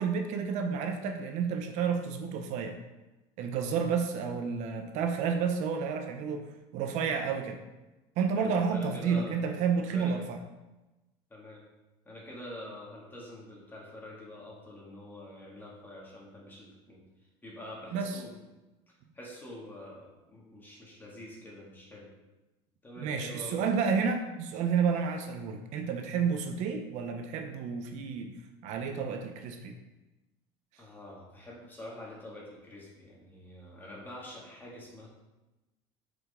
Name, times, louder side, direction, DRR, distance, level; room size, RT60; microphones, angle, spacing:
voice 1, 0.0-2.8 3.4-6.5 6.7-7.6 8.2-10.4 17.9-18.2 23.0-28.3 28.6-29.7, right 6 dB, 65° right, 5 dB, 0.8 m, -30 dB
voice 2, 8.3-9.4 9.9-10.1 11.3-11.6 12.0-17.0 17.4-18.3 19.1-22.1 22.8-23.6 30.8-35.1, left 1 dB, 15° left, -4 dB, 2.4 m, -46 dB
7.7 x 5.1 x 3.8 m, 1.1 s
supercardioid pair, 115°, 13 cm